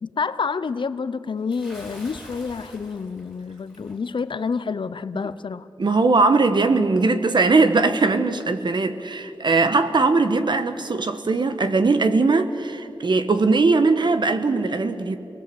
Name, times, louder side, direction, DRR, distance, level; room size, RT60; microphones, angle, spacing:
voice 1, 0.0-5.7, left 5 dB, 65° left, 0.7 m, -28 dB
Bathtub (filling or washing) / Splash splatter, 1.5-4.0, equal, 5° right, 5.5 m, -45 dB
voice 2, 5.8-15.2, right 3 dB, 60° right, 1.4 m, -20 dB
29.0 x 19.5 x 7.9 m
wide cardioid pair, 90°, 9 cm